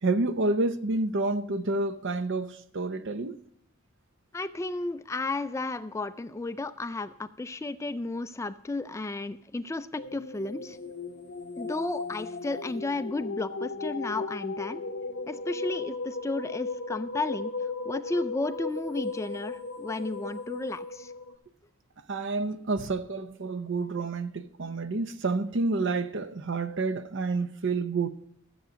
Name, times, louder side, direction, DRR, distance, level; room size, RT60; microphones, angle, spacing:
voice 1, 0.0-3.4 22.1-28.1, right 3 dB, 60° right, 0.7 m, -29 dB
voice 2, 4.3-10.8 11.6-14.9 15.3-17.5 17.9-21.1, left 2 dB, 15° left, 0.3 m, -33 dB
sound 1, 10.0-21.4, left 3 dB, 50° left, 0.7 m, -36 dB
13.5 x 7.9 x 5.0 m
head